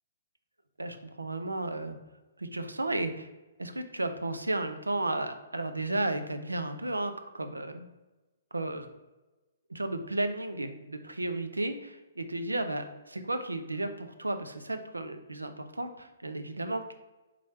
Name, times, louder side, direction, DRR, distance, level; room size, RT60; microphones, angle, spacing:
voice 1, 0.8-2.0 2.4-3.3 3.6-7.9 8.5-8.9 9.7-16.9, right 2 dB, 85° right, 8 dB, 0.5 m, -33 dB
3.8 x 3.1 x 4.2 m, 1.1 s
figure-of-eight pair, 125°, 0 cm